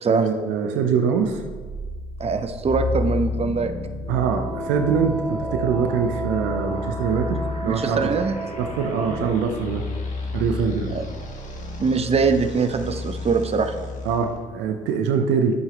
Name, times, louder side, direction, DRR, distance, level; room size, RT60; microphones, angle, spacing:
voice 1, 0.1-1.4 4.1-8.1 8.5-9.9 10.3-11.0 14.0-15.6, right 6 dB, 75° right, 5 dB, 0.9 m, -23 dB
sound 1, 1.1-14.4, left 3 dB, 40° left, 2.1 m, -32 dB
voice 2, 2.2-3.7 7.6-8.3 10.9-11.0 11.8-13.7, right 4 dB, 35° right, 8 dB, 0.8 m, -22 dB
Wind instrument woodwind instrument, 4.1-9.4, right 2 dB, 50° right, 3.1 m, -33 dB
11.0 x 7.7 x 3.1 m, 1.4 s
hypercardioid pair, 50°, 19 cm